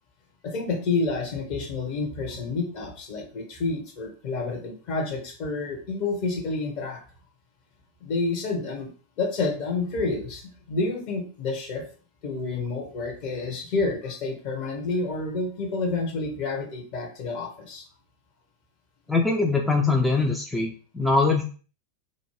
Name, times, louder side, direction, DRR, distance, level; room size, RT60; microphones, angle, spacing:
voice 1, 0.4-7.0 8.0-8.9 9.2-10.4 10.7-11.9 12.2-17.8, left 3 dB, 45° left, 2 dB, 0.8 m, -29 dB
voice 2, 19.1-21.4, left 3 dB, 5° left, 1 dB, 0.3 m, -22 dB
2.5 x 2.0 x 3.1 m, 0.40 s
figure-of-eight pair, 90°, 0 cm